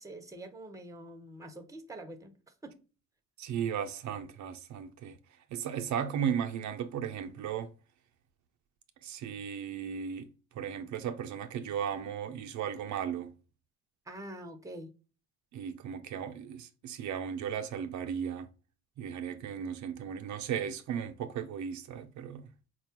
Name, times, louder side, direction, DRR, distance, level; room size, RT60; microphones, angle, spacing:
voice 1, 0.0-2.3 2.6-2.8 14.1-14.9, right 1 dB, 10° right, 0.6 m, -45 dB
voice 2, 3.4-5.1 5.5-7.7 9.0-10.3 10.6-13.3 15.5-18.5 19.0-22.5, right 8 dB, 70° right, 0.5 m, -36 dB
4.2 x 2.2 x 2.8 m
cardioid pair, 90°, 30 cm